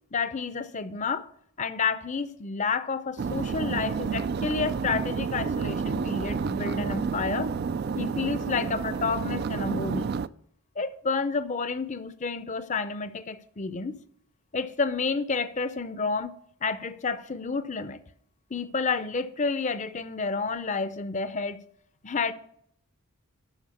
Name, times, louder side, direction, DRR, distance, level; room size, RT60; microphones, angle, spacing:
voice 1, 0.1-1.3 1.6-7.5 8.0-10.1 10.8-14.0 14.5-18.0 18.5-21.6 22.0-22.3, left 4 dB, 35° left, 0.6 m, -30 dB
sound 1, 3.2-10.3, right 5 dB, 45° right, 0.3 m, -30 dB
12.5 x 4.9 x 6.9 m
head